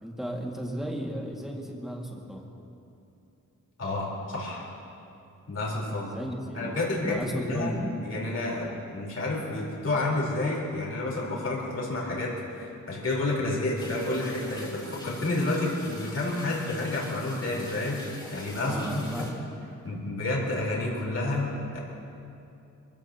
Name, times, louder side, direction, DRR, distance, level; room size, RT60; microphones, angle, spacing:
voice 1, 0.0-2.5 6.0-6.8 7.0-8.1 18.6-19.4 19.9-20.1, equal, ahead, -2 dB, 2.0 m, -34 dB
voice 2, 3.8-4.7 5.5-6.1 6.5-7.7 8.0-19.3 19.8-21.8, left 2 dB, 55° left, -5 dB, 4.1 m, -30 dB
sound 1, 13.8-19.3, left 1 dB, 15° left, 3.9 m, -44 dB
27.0 x 16.0 x 2.9 m, 2.7 s
wide cardioid pair, 175°, 31 cm